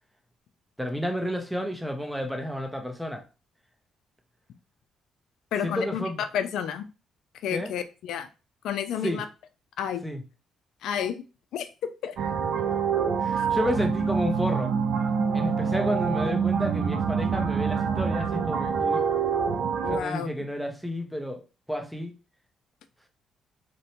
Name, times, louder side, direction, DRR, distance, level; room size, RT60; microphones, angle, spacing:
voice 1, 0.8-3.2 5.6-6.2 7.5-7.7 9.0-9.2 10.0-10.2 13.2-14.7 15.3-19.0 19.9-22.1, equal, ahead, 0.6 m, -31 dB
voice 2, 5.5-6.0 6.3-6.8 7.4-8.3 8.6-9.2 9.8-10.0 10.8-11.3 11.5-12.2 13.4-13.5 19.8-20.3, left 8 dB, 80° left, 0.3 m, -30 dB
sound 1, 12.2-20.0, right 6 dB, 75° right, 0.3 m, -26 dB
2.6 x 2.1 x 2.8 m
cardioid pair, 85°, 0 cm